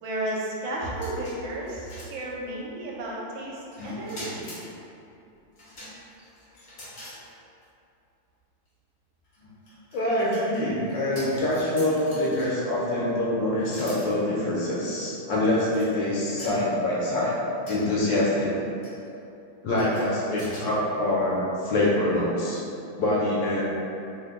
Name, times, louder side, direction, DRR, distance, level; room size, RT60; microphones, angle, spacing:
voice 1, 0.0-4.5, right 1 dB, 75° right, -4 dB, 1.4 m, -33 dB
sound 1, 0.8-2.6 3.7-4.7 5.6-7.2 7.6-7.7 9.2-12.8 13.6-14.1 14.8-14.9 15.6-15.9 16.4-17.0 17.7-18.1 18.8-19.1 19.8-20.6, equal, 50° left, 0.8 m, -42 dB
voice 2, 9.9-17.4 17.7-18.5 19.6-22.6 23.0-23.6, left 1 dB, 75° left, -6 dB, 1.2 m, -25 dB
3.3 x 2.1 x 3.5 m, 2.7 s
omnidirectional pair, 2.2 m